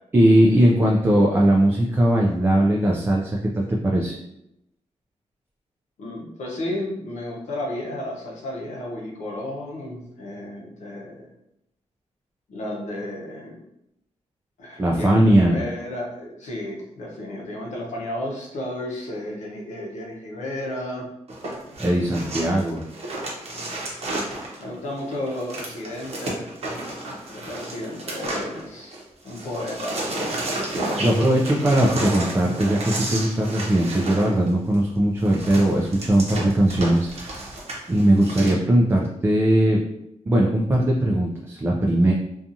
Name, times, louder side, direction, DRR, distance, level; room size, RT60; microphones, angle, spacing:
voice 1, 0.1-4.2 14.8-15.6 21.8-22.9 30.7-37.4 37.9-39.8 40.3-42.1, right 1 dB, 20° right, -2 dB, 0.3 m, -19 dB
voice 2, 6.0-11.3 12.5-13.6 14.6-21.1 23.5-23.8 24.6-26.5 27.3-30.4, left 1 dB, 75° left, -2 dB, 0.7 m, -33 dB
sound 1, 21.3-29.0 29.3-38.5, right 2 dB, 55° right, 0.8 m, -32 dB
2.7 x 2.3 x 2.5 m, 0.81 s
cardioid pair, 110°, 12 cm